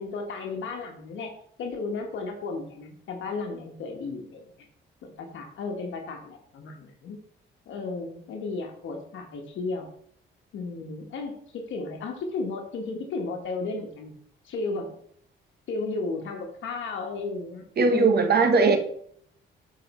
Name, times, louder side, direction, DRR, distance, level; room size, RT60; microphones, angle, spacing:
voice 1, 0.0-4.4 5.0-7.2 7.7-9.9 10.5-14.1 14.4-14.9 15.7-17.6 17.9-18.3, left 3 dB, 75° left, 3 dB, 1.2 m, -34 dB
voice 2, 17.8-18.8, right 4 dB, 55° right, 6 dB, 1.3 m, -19 dB
7.6 x 4.7 x 4.1 m, 0.64 s
cardioid pair, 90°, 20 cm